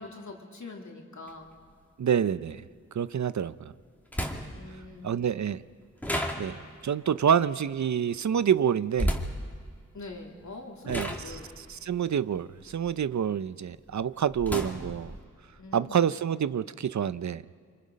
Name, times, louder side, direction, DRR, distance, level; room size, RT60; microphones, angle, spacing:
voice 1, 0.0-1.5 4.5-5.1 9.9-11.5 15.6-16.0, left 3 dB, 70° left, 0 dB, 2.8 m, -43 dB
sound 1, 1.3-1.4 3.4-3.5 4.1-4.7 6.0-6.9 8.9-9.4 10.3-10.5 10.9-13.3 13.7-15.2, equal, 5° left, 2.3 m, -33 dB
voice 2, 2.0-3.7 5.0-5.6 6.4-9.1 10.9-15.2 15.7-17.4, right 8 dB, 70° right, 15 dB, 0.6 m, -28 dB
29.0 x 25.0 x 5.2 m, 2.1 s
wide cardioid pair, 90°, 30 cm